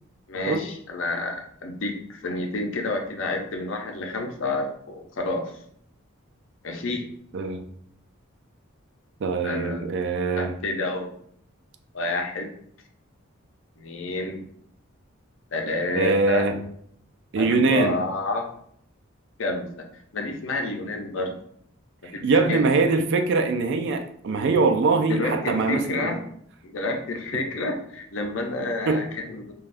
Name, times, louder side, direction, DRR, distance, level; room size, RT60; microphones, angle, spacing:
voice 1, 0.3-5.5 6.6-7.0 9.4-9.9 10.4-11.1 11.9-12.5 13.8-14.4 15.5-16.5 17.4-18.5 19.4-19.9 20.1-21.4 22.1-22.6 25.1-26.2 26.6-29.5, left 2 dB, 65° left, 3 dB, 0.5 m, -29 dB
voice 2, 7.3-7.7 9.2-10.6 15.9-16.6 17.3-18.0 22.2-26.1 28.9-29.1, right 3 dB, 55° right, 7 dB, 0.3 m, -22 dB
3.3 x 2.3 x 2.5 m, 0.66 s
head